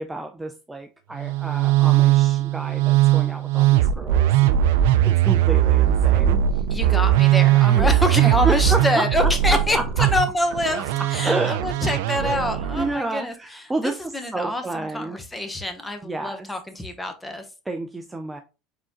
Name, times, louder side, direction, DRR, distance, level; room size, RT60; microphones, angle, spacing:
voice 1, 0.0-6.6 7.7-8.0 8.4-10.1 11.0-11.6 12.2-15.2 16.0-16.5 17.7-18.4, right 2 dB, 10° right, 0.4 m, -30 dB
Musical instrument, 1.2-12.9, right 12 dB, 85° right, 0.4 m, -19 dB
voice 2, 6.7-10.8 11.1-17.5, left 1 dB, 10° left, 0.9 m, -26 dB
4.8 x 3.7 x 2.9 m
supercardioid pair, 125°, 0 cm